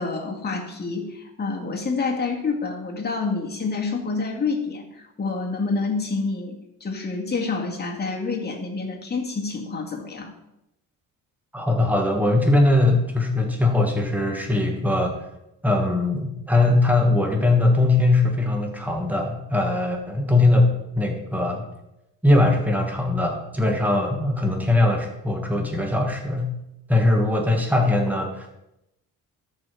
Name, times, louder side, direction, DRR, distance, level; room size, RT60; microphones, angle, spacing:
voice 1, 0.0-4.9 5.2-10.3, left 4 dB, 25° left, 0 dB, 1.9 m, -28 dB
voice 2, 11.5-15.2 15.6-21.7 22.2-26.5 26.9-28.6, left 2 dB, 5° right, 2 dB, 1.6 m, -21 dB
13.0 x 4.9 x 4.6 m, 0.87 s
cardioid pair, 115°, 36 cm